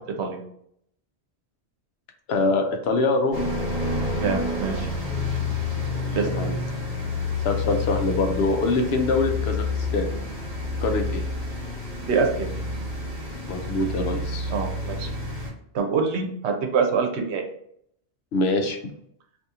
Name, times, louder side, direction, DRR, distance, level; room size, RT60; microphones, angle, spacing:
voice 1, 2.3-3.4 5.9-6.5 7.4-10.1 10.8-11.2 13.5-14.5 18.3-18.8, left 2 dB, 75° left, 4 dB, 0.8 m, -24 dB
sound 1, 3.3-15.5, left 3 dB, 35° right, 1.1 m, -29 dB
voice 2, 4.1-4.9 6.1-6.4 12.1-12.5 14.5-15.1 15.7-17.4, right 5 dB, 80° right, 4 dB, 0.9 m, -25 dB
2.8 x 2.7 x 3.5 m, 0.71 s
omnidirectional pair, 1.1 m